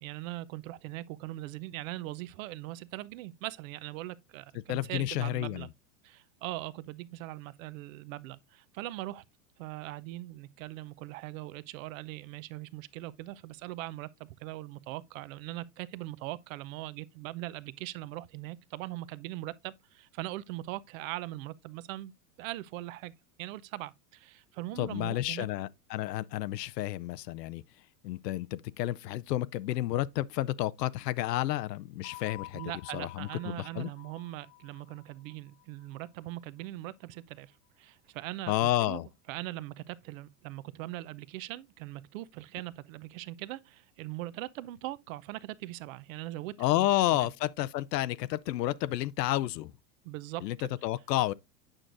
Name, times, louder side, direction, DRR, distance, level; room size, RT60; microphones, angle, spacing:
voice 1, 0.0-5.7 6.0-9.2 9.6-22.1 22.4-23.1 23.4-25.5 32.5-39.0 39.3-47.3 50.0-50.4, right 17 dB, 55° right, 0.7 m, -41 dB
voice 2, 4.7-5.7 24.8-27.6 28.0-32.6 32.9-33.9 38.5-39.1 46.6-49.7 50.4-50.6 50.8-51.3, left 15 dB, 80° left, 0.6 m, -30 dB
sound 1, 32.0-36.7, left 20 dB, 30° left, 0.5 m, -51 dB
8.9 x 6.2 x 2.5 m
hypercardioid pair, 115°, 48 cm